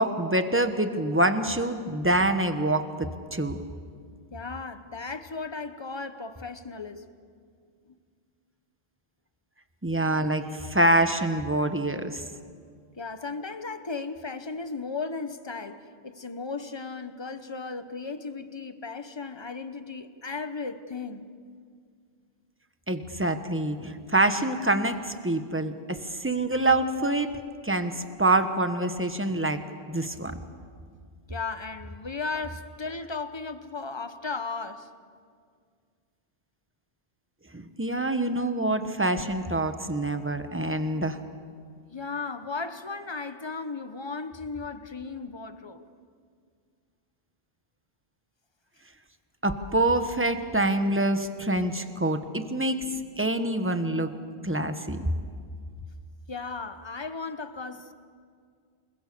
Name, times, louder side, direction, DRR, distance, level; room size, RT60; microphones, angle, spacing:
voice 1, 0.0-3.6 9.8-12.2 22.9-27.4 27.6-29.6 29.9-30.4 37.5-41.2 49.4-52.8 53.2-54.1 54.4-55.1, right 1 dB, 15° right, 1.2 m, -26 dB
voice 2, 4.3-7.0 7.9-8.0 13.0-21.3 31.3-34.9 41.9-45.8 56.3-57.9, left 4 dB, 25° left, 1.1 m, -36 dB
28.5 x 21.0 x 6.8 m
omnidirectional pair, 1.0 m